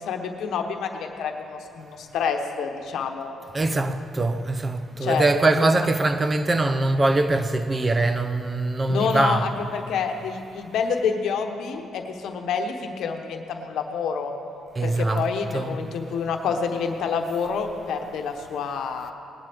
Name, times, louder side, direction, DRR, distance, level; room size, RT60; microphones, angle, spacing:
voice 1, 0.0-3.3 5.0-5.3 5.5-5.7 8.9-14.3 14.8-19.1, left 6 dB, 75° left, 1.0 m, -28 dB
voice 2, 3.5-9.5 14.8-15.8, right 2 dB, 25° right, 0.7 m, -23 dB
19.5 x 11.0 x 3.5 m
cardioid pair, 100°, 0 cm